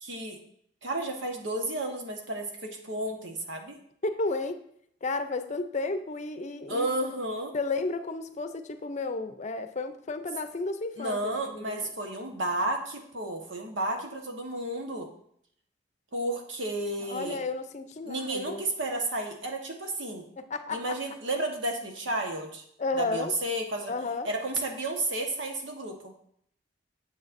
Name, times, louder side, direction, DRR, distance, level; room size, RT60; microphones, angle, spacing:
voice 1, 0.0-0.4 0.8-3.8 6.7-7.5 11.0-15.1 16.1-17.4 18.0-20.3 20.7-22.6 22.9-23.9 24.2-26.1, right 1 dB, 90° right, 3 dB, 1.3 m, -32 dB
voice 2, 4.0-4.6 5.0-6.9 7.5-11.2 11.4-11.9 17.1-18.6 20.4-21.0 22.8-23.3 23.9-24.3, left 3 dB, 40° left, 9 dB, 0.5 m, -32 dB
9.6 x 7.4 x 2.6 m, 0.68 s
head